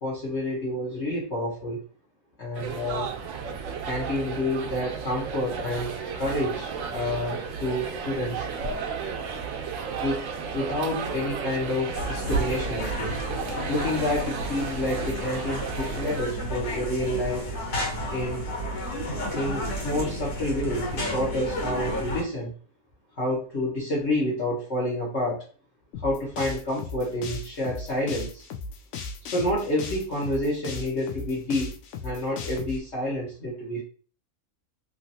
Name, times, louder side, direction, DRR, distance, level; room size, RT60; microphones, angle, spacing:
voice 1, 0.0-1.8 2.4-3.1 3.8-8.5 10.0-13.2 13.7-17.4 18.1-18.5 19.3-22.5 23.2-25.5 26.0-28.5 29.2-31.8 32.0-33.8, left 1 dB, 50° left, -5 dB, 1.1 m, -29 dB
sound 1, 2.5-16.2, right 5 dB, 65° right, 0.9 m, -33 dB
sound 2, 11.9-22.2, equal, 90° left, 1.6 m, -32 dB
sound 3, 25.9-32.8, left 4 dB, 70° left, 0.7 m, -36 dB
3.1 x 2.8 x 2.7 m, 0.38 s
omnidirectional pair, 1.6 m